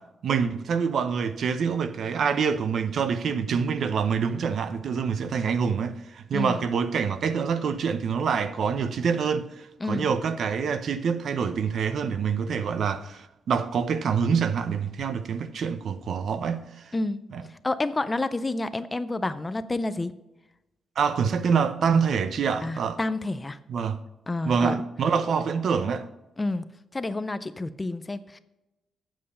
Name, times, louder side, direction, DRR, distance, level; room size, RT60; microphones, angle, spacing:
voice 1, 0.2-16.9 17.3-17.4 21.0-23.0 23.7-24.0 24.4-26.1, right 6 dB, 55° right, 0.6 m, -26 dB
voice 2, 6.3-6.7 9.8-10.1 16.9-17.2 17.5-20.1 22.6-23.6 24.3-24.8 26.4-26.7 26.9-28.4, left 2 dB, 15° left, 0.4 m, -29 dB
8.5 x 7.5 x 5.5 m
wide cardioid pair, 165°, 0 cm